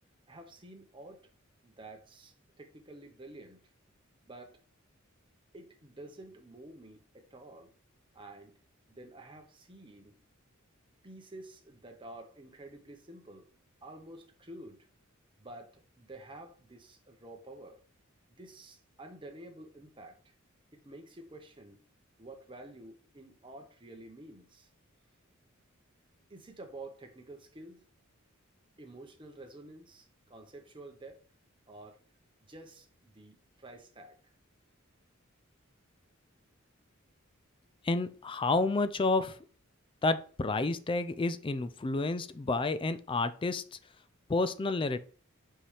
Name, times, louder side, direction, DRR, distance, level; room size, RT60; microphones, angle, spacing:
voice 1, 0.3-1.2 1.6-3.6 4.2-4.6 5.5-7.7 8.1-8.5 8.9-10.2 11.0-13.5 13.8-14.9 15.4-17.8 18.4-20.3 20.7-21.8 22.2-24.7 26.3-27.8 28.8-31.2 31.7-32.0 32.5-34.2, right 2 dB, 25° right, 1.0 m, -50 dB
voice 2, 37.8-39.4 40.0-43.8 44.3-45.0, left 3 dB, 25° left, 0.4 m, -30 dB
5.6 x 5.3 x 3.4 m
head